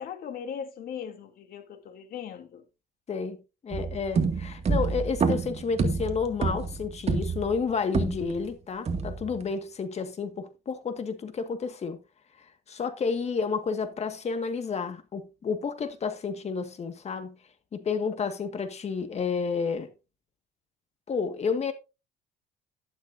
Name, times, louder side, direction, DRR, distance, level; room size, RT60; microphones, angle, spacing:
voice 1, 0.0-2.6, left 7 dB, 60° left, 2.8 m, -39 dB
voice 2, 3.6-12.0 12.4-17.4 17.7-19.9 21.1-21.7, left 5 dB, 40° left, 1.8 m, -31 dB
sound 1, 3.7-8.5 8.9-9.4, right 4 dB, 40° right, 2.1 m, -28 dB
12.0 x 12.0 x 2.7 m
cardioid pair, 110°, 17 cm